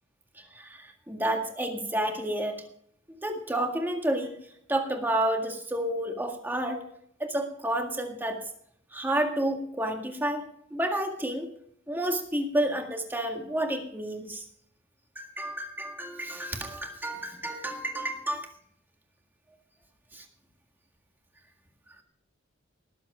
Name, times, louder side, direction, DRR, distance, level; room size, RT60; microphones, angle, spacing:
voice 1, 0.5-2.6 3.1-4.3 4.7-6.8 7.2-8.4 8.9-11.5 11.9-14.4 15.2-18.5 20.1-20.2, right 1 dB, 10° right, 3 dB, 1.9 m, -30 dB
18.5 x 7.9 x 4.9 m, 0.68 s
head